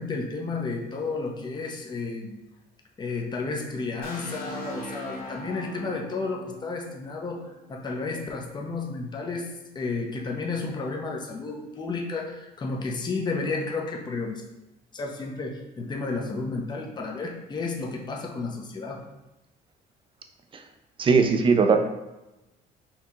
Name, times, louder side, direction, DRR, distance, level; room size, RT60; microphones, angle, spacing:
voice 1, 0.0-2.4 3.0-9.5 9.7-14.4 14.9-19.0, left 3 dB, 25° left, 0 dB, 0.7 m, -32 dB
sound 1, 4.0-7.8, equal, 60° left, 1.4 m, -40 dB
voice 2, 21.0-21.8, right 5 dB, 30° right, 5 dB, 0.5 m, -19 dB
4.4 x 2.8 x 3.8 m, 0.98 s
cardioid pair, 110°, 17 cm